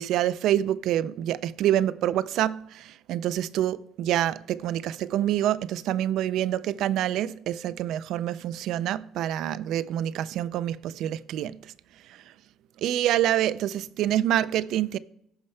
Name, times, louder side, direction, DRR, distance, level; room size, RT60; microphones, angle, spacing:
voice 1, 0.0-11.7 12.8-15.0, right 12 dB, 60° right, 0.3 m, -26 dB
14.5 x 5.4 x 3.2 m
cardioid pair, 180°, 0 cm